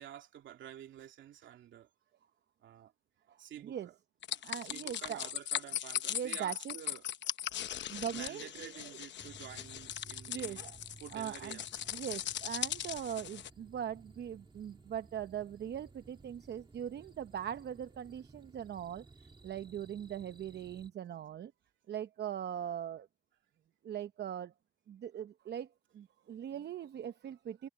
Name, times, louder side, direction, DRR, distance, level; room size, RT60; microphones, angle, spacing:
voice 1, 0.0-1.9 2.6-2.9 3.4-3.9 4.3-7.1 8.1-10.6 11.0-11.9, right 11 dB, 75° right, 2.8 m, -50 dB
voice 2, 3.3-3.9 4.4-5.3 6.1-6.7 7.9-8.7 10.3-10.8 11.1-11.6 11.9-19.1 19.4-21.5 21.9-23.1 23.8-24.5 24.9-25.7 25.9-27.7, right 9 dB, 60° right, 0.9 m, -40 dB
sound 1, 4.2-13.5, left 11 dB, 65° left, 1.0 m, -39 dB
sound 2, 9.2-20.9, right 3 dB, 25° right, 2.5 m, -57 dB
cardioid pair, 90°, 20 cm